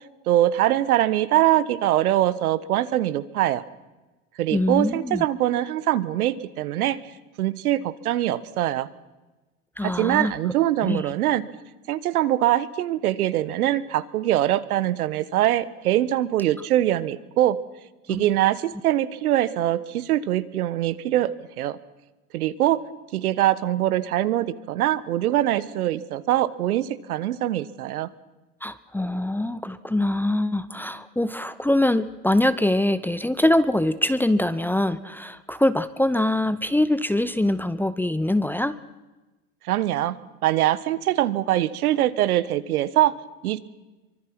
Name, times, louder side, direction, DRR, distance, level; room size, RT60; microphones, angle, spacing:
voice 1, 0.3-3.6 4.4-7.0 7.4-8.9 9.8-11.4 11.9-17.6 18.1-21.3 21.6-21.8 22.3-22.8 23.1-28.1 39.7-40.2 40.4-43.1 43.4-43.6, right 13 dB, 75° right, 15 dB, 1.4 m, -23 dB
voice 2, 4.5-5.2 9.8-10.3 10.8-11.0 18.1-18.3 28.6-38.8, left 1 dB, 5° left, 14 dB, 0.8 m, -23 dB
24.5 x 24.0 x 6.1 m, 1.1 s
hypercardioid pair, 100°, 45 cm